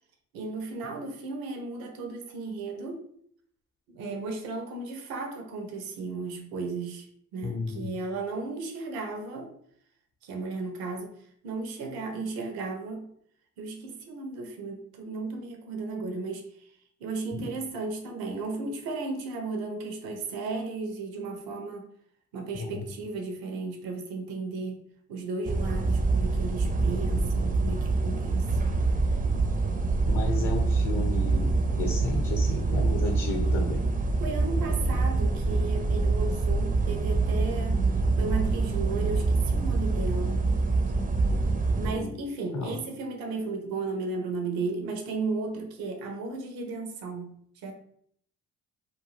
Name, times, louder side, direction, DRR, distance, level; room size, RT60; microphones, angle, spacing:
voice 1, 0.3-3.1 3.9-9.6 10.2-13.1 13.6-21.9 22.3-28.6 34.2-37.9 38.2-40.4 41.8-47.7, right 3 dB, 75° right, 4 dB, 0.6 m, -35 dB
voice 2, 7.4-7.9 17.3-17.5 22.5-22.8 30.1-33.8 41.9-42.2 42.5-42.8, left 3 dB, 45° left, 2 dB, 0.7 m, -32 dB
sound 1, 25.4-41.9, right 3 dB, 25° right, 0.4 m, -25 dB
2.5 x 2.3 x 3.2 m, 0.65 s
hypercardioid pair, 45°, 36 cm